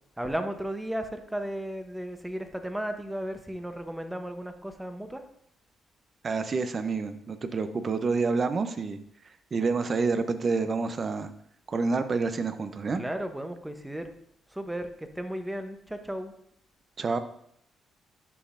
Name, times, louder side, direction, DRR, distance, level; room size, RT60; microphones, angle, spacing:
voice 1, 0.2-5.2 13.0-14.1 14.5-16.3, right 1 dB, 5° right, 7 dB, 0.8 m, -34 dB
voice 2, 6.2-9.0 9.5-11.3 11.7-13.0 17.0-17.2, right 4 dB, 40° right, 10 dB, 0.6 m, -28 dB
11.0 x 5.3 x 2.5 m, 0.71 s
cardioid pair, 90°, 0 cm